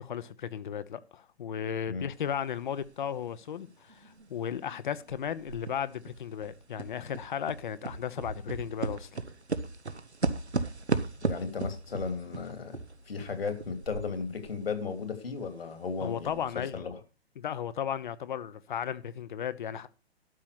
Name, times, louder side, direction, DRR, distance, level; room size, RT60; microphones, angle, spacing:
voice 1, 0.0-9.1 16.0-16.8 17.4-19.9, left 8 dB, 45° left, 1.0 m, -35 dB
sound 1, 2.3-2.4 2.8-4.7 5.1-14.6 14.9-15.0 15.5-15.6 16.1-16.6, right 3 dB, 85° right, 1.3 m, -35 dB
voice 2, 11.2-12.8 13.1-17.0, left 5 dB, 65° left, 2.9 m, -35 dB
12.5 x 5.8 x 6.7 m
figure-of-eight pair, 130°, 32 cm